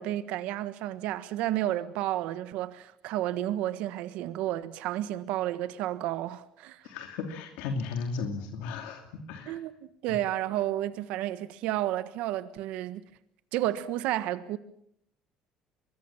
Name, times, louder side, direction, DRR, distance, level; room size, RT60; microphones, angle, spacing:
voice 1, 0.0-6.8 9.5-13.0 13.5-14.6, right 14 dB, 75° right, 1.4 m, -31 dB
voice 2, 6.8-9.6 10.1-10.2, left 4 dB, 90° left, 2.8 m, -35 dB
25.0 x 21.5 x 7.2 m
cardioid pair, 120°, 2 cm